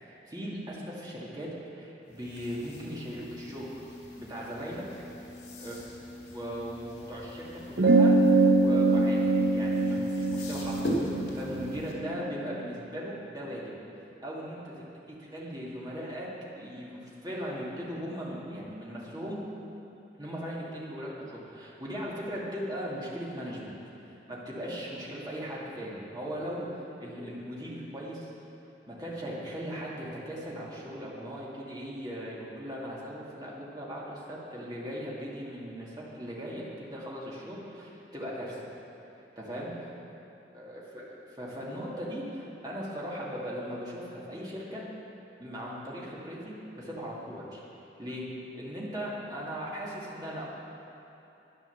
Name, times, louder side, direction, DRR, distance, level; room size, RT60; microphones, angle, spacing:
voice 1, 0.0-3.8 4.2-4.8 5.6-5.8 6.3-9.2 9.5-11.0 11.3-13.7 14.2-14.6 15.1-16.3 16.6-19.4 20.2-23.7 24.1-28.3 28.9-38.7 39.4-39.7 40.5-44.8 45.4-47.6 48.0-48.3 48.5-50.4, equal, 20° right, -6 dB, 2.3 m, -38 dB
sound 1, 2.1-11.9, equal, 80° left, 2.3 m, -40 dB
sound 2, 7.8-12.6, right 2 dB, 90° right, 0.8 m, -23 dB
11.0 x 9.7 x 7.1 m, 2.9 s
head